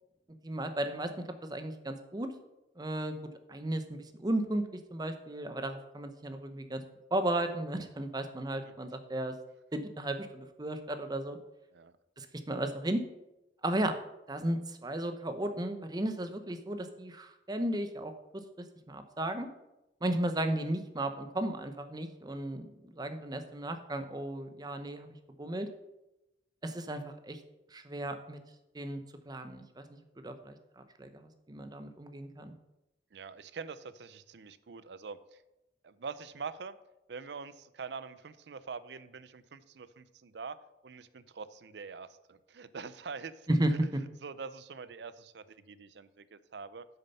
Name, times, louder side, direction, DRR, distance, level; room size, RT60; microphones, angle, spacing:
voice 1, 0.3-1.1 1.4-2.3 2.8-3.2 3.5-6.8 7.1-9.3 9.7-11.4 12.2-13.0 13.6-14.0 14.3-18.4 18.9-19.5 20.0-25.1 25.4-25.7 26.6-27.4 27.7-28.4 28.7-29.8 30.2-32.5 43.5-43.7, right 1 dB, 25° right, 8 dB, 0.8 m, -34 dB
voice 2, 33.1-35.4 35.8-36.8 37.1-40.6 40.8-43.5 44.2-46.9, right 5 dB, 70° right, 15 dB, 0.5 m, -44 dB
8.3 x 6.7 x 5.5 m, 0.95 s
head